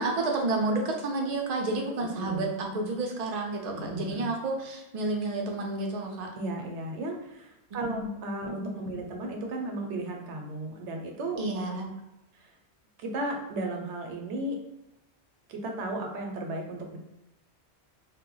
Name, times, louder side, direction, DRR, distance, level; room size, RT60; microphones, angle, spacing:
voice 1, 0.0-6.3 7.8-8.0 8.5-8.7 11.4-11.9, right 2 dB, 50° right, 1 dB, 0.5 m, -30 dB
voice 2, 2.0-2.5 3.7-4.3 6.4-11.4 12.4-12.5 13.0-14.6 15.5-17.0, right 1 dB, 80° right, 2 dB, 0.9 m, -35 dB
2.2 x 2.0 x 3.7 m, 0.95 s
omnidirectional pair, 1.2 m